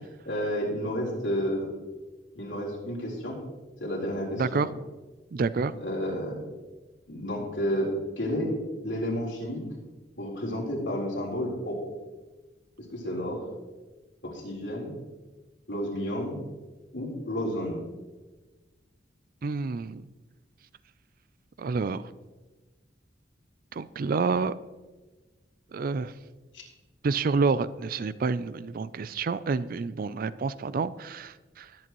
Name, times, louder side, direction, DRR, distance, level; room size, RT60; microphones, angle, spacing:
voice 1, 0.3-1.7 2.3-3.4 3.8-4.6 5.7-6.4 7.1-8.5 8.8-9.6 10.2-11.8 12.8-13.5 14.2-14.9 15.7-16.4 16.9-17.8 26.5-26.6, equal, 75° left, -3 dB, 3.9 m, -31 dB
voice 2, 5.3-5.7 19.4-20.0 21.6-22.0 23.7-24.5 25.7-26.1 27.0-31.7, right 4 dB, 50° right, 16 dB, 0.4 m, -28 dB
21.0 x 8.5 x 3.1 m, 1.2 s
head